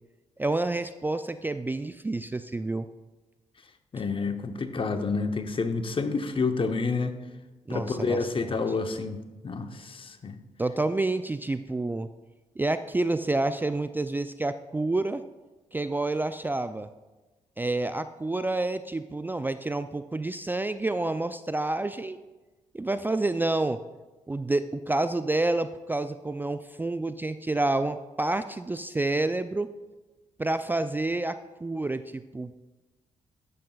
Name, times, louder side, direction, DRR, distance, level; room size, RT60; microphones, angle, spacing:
voice 1, 0.4-2.9 7.7-8.5 10.6-12.1 12.6-15.2 15.7-16.9 17.6-22.2 22.7-23.8 24.3-29.7 30.4-32.5, right 2 dB, 15° right, 11 dB, 0.3 m, -28 dB
voice 2, 3.9-7.1 7.7-9.2 9.4-10.4, left 4 dB, 40° left, 8 dB, 0.8 m, -29 dB
11.0 x 7.6 x 2.3 m, 1.2 s
supercardioid pair, 50°, 13 cm